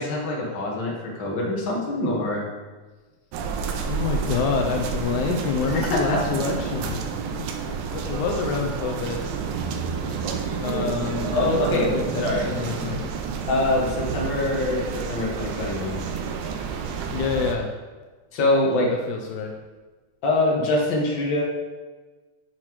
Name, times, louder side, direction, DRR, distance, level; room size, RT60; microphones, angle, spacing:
voice 1, 0.0-2.4 5.6-6.2 10.8-10.9 11.3-11.9 12.2-12.5 13.5-16.0 18.3-18.9 20.2-21.4, left 2 dB, 50° left, -3 dB, 1.5 m, -24 dB
sound 1, 3.3-17.6, right 6 dB, 85° right, 2.4 m, -29 dB
voice 2, 3.9-7.0 7.4-7.5 7.8-9.3 10.6-13.1 17.1-17.7 18.9-19.5, left 5 dB, 80° left, 1 dB, 1.7 m, -27 dB
11.0 x 5.8 x 3.1 m, 1.3 s
omnidirectional pair, 4.2 m